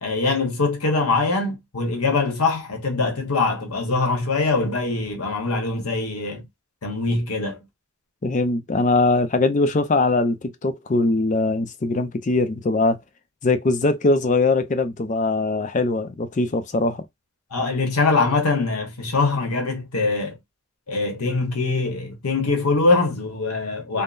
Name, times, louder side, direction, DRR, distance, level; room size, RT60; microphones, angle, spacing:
voice 1, 0.0-6.5 6.8-7.6 17.5-20.4 20.9-24.0, left 3 dB, 85° left, 1.1 m, -23 dB
voice 2, 8.2-13.0 13.4-17.1 23.9-24.0, left 2 dB, 35° left, 0.4 m, -21 dB
3.6 x 2.1 x 2.5 m
head